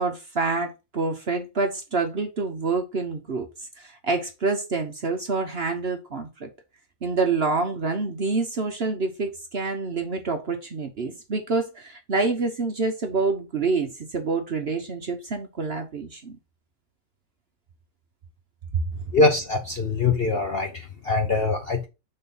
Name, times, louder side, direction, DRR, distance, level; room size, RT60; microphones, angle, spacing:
voice 1, 0.0-3.5 3.8-6.5 7.0-16.4, right 4 dB, 45° right, 0.9 m, -27 dB
voice 2, 19.1-21.9, left 3 dB, 50° left, 0.7 m, -23 dB
6.0 x 3.9 x 5.2 m
omnidirectional pair, 1.8 m